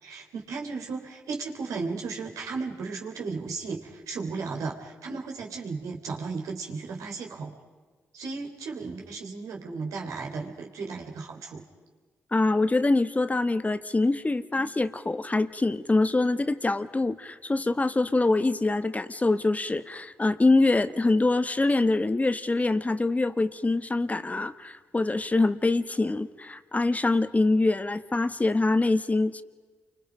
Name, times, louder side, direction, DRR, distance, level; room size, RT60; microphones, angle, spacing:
voice 1, 0.0-7.5 8.1-11.6, right 4 dB, 85° right, 1 dB, 3.6 m, -35 dB
voice 2, 12.3-29.4, left 2 dB, 25° left, 11 dB, 1.5 m, -24 dB
29.0 x 25.0 x 5.2 m, 1.5 s
supercardioid pair, 50°, 6 cm